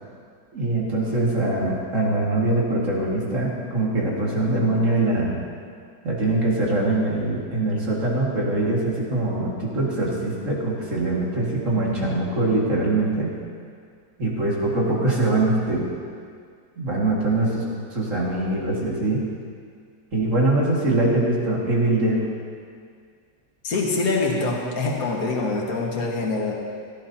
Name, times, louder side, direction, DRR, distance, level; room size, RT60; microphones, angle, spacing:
voice 1, 0.5-5.4 6.0-13.3 14.2-15.9 16.8-17.6 17.9-19.2 20.1-22.2, right 2 dB, 45° right, -4 dB, 2.6 m, -23 dB
voice 2, 23.6-26.5, left 3 dB, 55° left, -1 dB, 2.0 m, -24 dB
16.5 x 14.5 x 2.9 m, 2.1 s
omnidirectional pair, 1.9 m